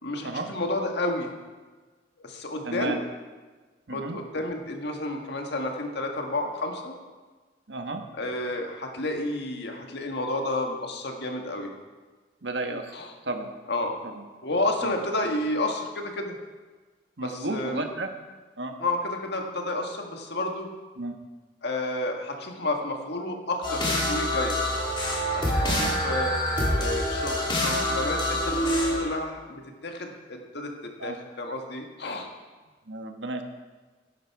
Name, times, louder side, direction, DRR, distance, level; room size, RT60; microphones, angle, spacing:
voice 1, 0.0-1.3 2.2-3.0 3.9-7.0 8.1-11.7 12.9-13.1 13.7-14.0 14.4-16.4 17.2-17.9 18.8-20.7 21.6-24.6 25.3-26.4 26.8-32.3, left 2 dB, 65° left, 3 dB, 1.7 m, -31 dB
voice 2, 2.6-3.0 3.9-4.2 7.7-8.0 12.4-12.9 13.3-13.5 14.8-14.9 17.2-18.1 18.6-18.7 21.0-21.1 25.6-25.9 31.0-31.2 32.9-33.4, right 2 dB, 70° right, 5 dB, 1.3 m, -32 dB
sound 1, 23.6-29.0, left 1 dB, 25° left, 3.2 m, -26 dB
16.0 x 11.0 x 4.8 m, 1.3 s
head